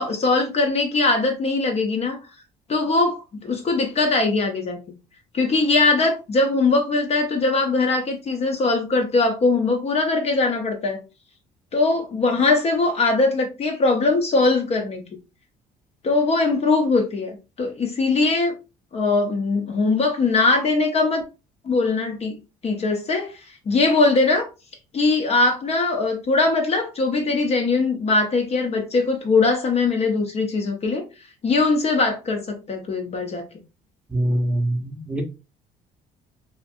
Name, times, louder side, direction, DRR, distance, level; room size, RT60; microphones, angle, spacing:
voice 1, 0.0-2.2 2.7-5.0 5.3-11.0 11.7-15.0 16.0-18.6 18.9-21.2 21.6-22.4 22.6-24.5 24.9-31.0 31.4-33.5, left 3 dB, 40° left, 0.5 m, -21 dB
voice 2, 34.1-35.2, right 1 dB, 5° right, 0.7 m, -23 dB
2.5 x 2.5 x 2.5 m
cardioid pair, 110°, 17 cm